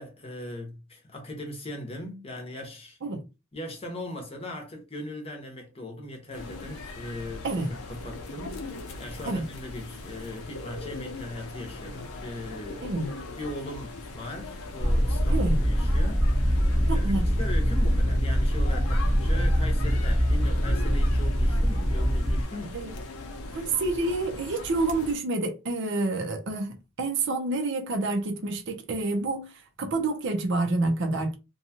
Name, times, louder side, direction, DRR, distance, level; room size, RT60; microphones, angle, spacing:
voice 1, 0.0-3.0 3.5-12.9 13.4-16.3 16.9-22.8, left 1 dB, 25° left, 0.8 m, -39 dB
sound 1, 6.3-25.2, left 2 dB, 85° left, 0.7 m, -40 dB
sound 2, 14.8-22.4, equal, ahead, 0.5 m, -23 dB
voice 2, 15.3-15.6 16.9-17.3 19.3-19.4 22.7-22.9 23.5-29.5 29.8-31.4, right 2 dB, 55° right, 0.5 m, -28 dB
2.7 x 2.3 x 2.7 m
head